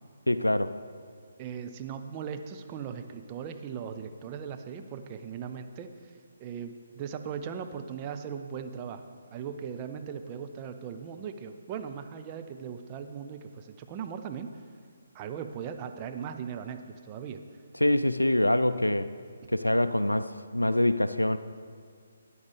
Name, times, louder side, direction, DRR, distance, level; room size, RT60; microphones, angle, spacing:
voice 1, 0.3-0.8 17.8-19.1 19.5-21.4, left 1 dB, 85° left, 12 dB, 0.4 m, -25 dB
voice 2, 1.4-5.9 6.4-14.5 15.1-17.4, right 7 dB, 25° right, 7 dB, 0.5 m, -38 dB
13.0 x 9.5 x 3.5 m, 2.1 s
figure-of-eight pair, 140°, 0 cm